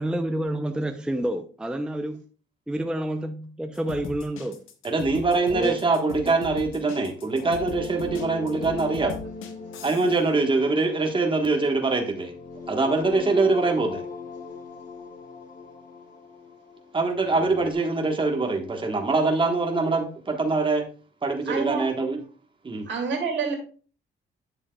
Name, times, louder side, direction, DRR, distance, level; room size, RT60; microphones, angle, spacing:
voice 1, 0.0-2.2 2.7-4.6 5.5-5.8, right 1 dB, 5° right, 0.5 m, -29 dB
sound 1, 3.7-10.2, left 6 dB, 90° left, 1.0 m, -40 dB
voice 2, 4.8-9.2 9.8-12.3 12.7-14.0 16.9-20.8 21.2-22.2 22.6-22.8, right 3 dB, 25° right, 1.3 m, -23 dB
sound 2, 7.2-17.7, left 4 dB, 45° left, 1.2 m, -39 dB
voice 3, 21.5-21.9 22.9-23.5, right 5 dB, 70° right, 2.4 m, -27 dB
9.1 x 7.1 x 2.3 m
cardioid pair, 90°, 20 cm